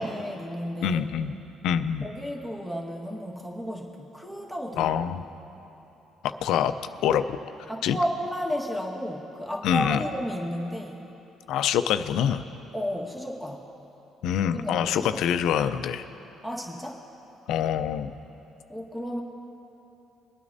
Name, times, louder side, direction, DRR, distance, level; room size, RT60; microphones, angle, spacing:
voice 1, 0.0-1.0 2.0-4.9 7.7-11.1 12.7-13.6 14.5-15.1 16.4-17.0 18.7-19.2, equal, 5° right, -1 dB, 1.5 m, -33 dB
voice 2, 0.8-1.4 1.6-2.1 4.8-5.2 6.2-6.7 7.0-7.4 7.8-8.0 9.6-10.0 11.5-12.5 14.2-16.1 17.5-18.1, left 9 dB, 75° left, 10 dB, 0.5 m, -25 dB
23.5 x 9.4 x 2.7 m, 3.0 s
cardioid pair, 85°, 0 cm